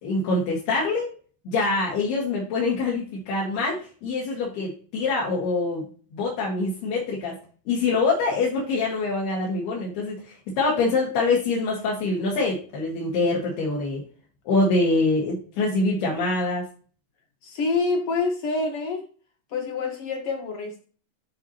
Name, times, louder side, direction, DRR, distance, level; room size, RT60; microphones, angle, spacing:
voice 1, 0.0-1.1 1.5-5.8 6.1-7.4 7.7-10.2 10.6-14.0 14.5-16.6, left 3 dB, 80° left, 4.0 m, -24 dB
voice 2, 17.4-19.0 19.5-20.8, left 3 dB, 50° left, 1.8 m, -27 dB
12.0 x 4.3 x 3.0 m
omnidirectional pair, 4.5 m